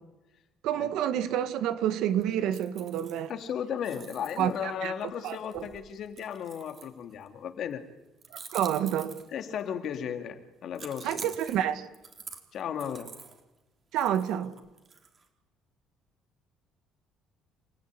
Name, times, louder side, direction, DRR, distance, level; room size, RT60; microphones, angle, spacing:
voice 1, 0.6-3.3 4.4-4.9 5.2-5.7 8.3-9.2 11.0-11.9 13.9-14.6, right 10 dB, 75° right, 2.1 m, -29 dB
sound 1, 2.2-3.5 3.8-7.3 8.2-9.6 10.7-13.4 14.0-15.2, right 5 dB, 40° right, 3.9 m, -47 dB
voice 2, 3.3-7.8 9.3-11.3 12.5-13.1, left 8 dB, 60° left, 2.8 m, -35 dB
28.5 x 16.0 x 10.0 m
cardioid pair, 105°, 0 cm